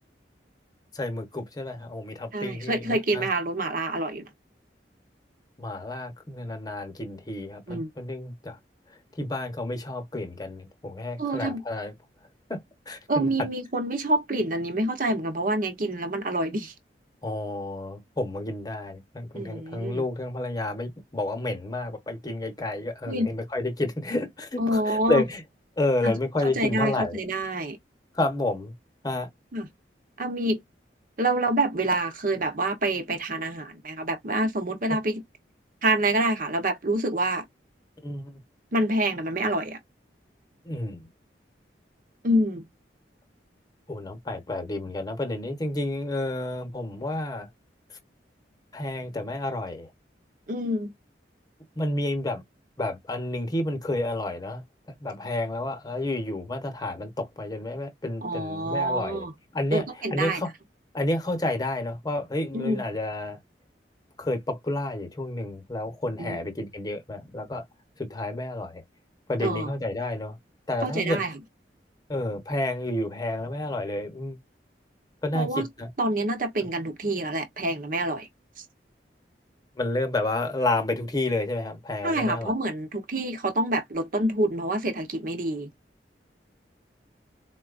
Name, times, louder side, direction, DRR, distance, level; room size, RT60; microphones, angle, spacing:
voice 1, 0.9-3.3 5.6-8.6 9.2-11.9 12.5-13.5 17.2-25.4 25.8-27.2 28.1-28.7 29.0-29.3 38.0-38.4 40.6-41.0 43.9-47.5 48.7-49.9 51.8-52.4 52.8-54.6 55.0-59.3 59.5-59.8 60.1-60.5 60.9-63.4 64.2-67.6 68.0-68.8 69.3-70.4 70.7-71.2 72.1-74.4 75.2-75.9 79.8-82.5, left 2 dB, 20° left, 0.9 m, -30 dB
voice 2, 2.3-4.3 7.7-7.9 11.2-11.6 13.1-16.7 19.3-20.0 23.0-23.3 24.6-25.2 26.0-26.2 26.4-27.8 29.5-29.7 30.2-30.6 31.2-35.2 35.8-37.4 38.7-39.8 42.2-42.6 50.5-50.9 58.2-59.3 59.7-60.4 62.5-62.8 66.2-66.5 69.4-69.7 70.8-71.3 75.3-75.7 76.0-78.3 82.0-85.7, right 1 dB, 50° right, 0.9 m, -27 dB
4.2 x 2.2 x 2.5 m
head